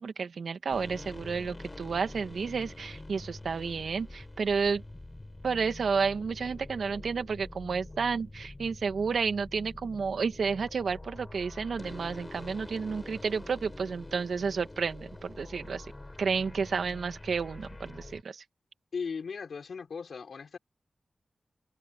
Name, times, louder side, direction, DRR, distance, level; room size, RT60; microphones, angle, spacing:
voice 1, 0.0-4.8 5.4-15.8 16.2-18.4, right 5 dB, 85° right, 1.7 m, -31 dB
sound 1, 0.7-18.2, left 2 dB, 20° left, 5.6 m, -45 dB
voice 2, 18.9-20.6, left 5 dB, 80° left, 4.4 m, -37 dB
wide cardioid pair, 110°, 0 cm